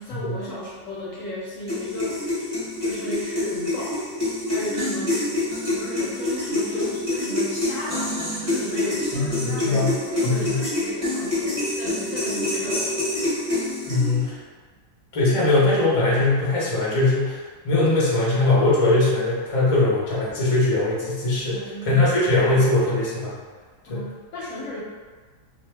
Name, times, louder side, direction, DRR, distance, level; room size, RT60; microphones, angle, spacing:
voice 1, 0.0-2.4 2.8-4.0 4.5-5.2 5.7-8.1 8.4-13.0 21.5-22.0 23.9-24.8, left 1 dB, 65° left, -6 dB, 0.8 m, -34 dB
sound 1, 1.7-14.3, left 1 dB, 20° right, 0.8 m, -27 dB
voice 2, 9.1-9.9 10.2-10.6 13.9-14.4 15.1-17.4 17.6-23.4 23.8-24.1, left 2 dB, 45° left, -7 dB, 0.4 m, -21 dB
2.6 x 2.4 x 3.2 m, 1.5 s
omnidirectional pair, 1.8 m